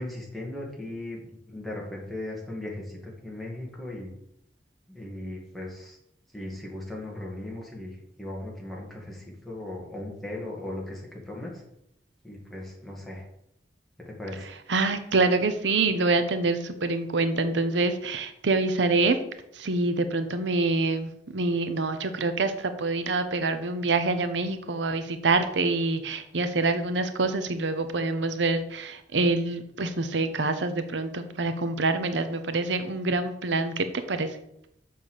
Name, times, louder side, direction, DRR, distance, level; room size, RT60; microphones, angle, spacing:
voice 1, 0.0-4.1 4.9-6.0 6.3-7.9 8.2-11.5 12.2-13.2 14.1-14.5, left 1 dB, ahead, -3 dB, 2.1 m, -37 dB
voice 2, 14.4-19.2 19.5-34.3, right 3 dB, 90° right, 9 dB, 0.8 m, -26 dB
7.1 x 5.6 x 6.5 m, 0.78 s
head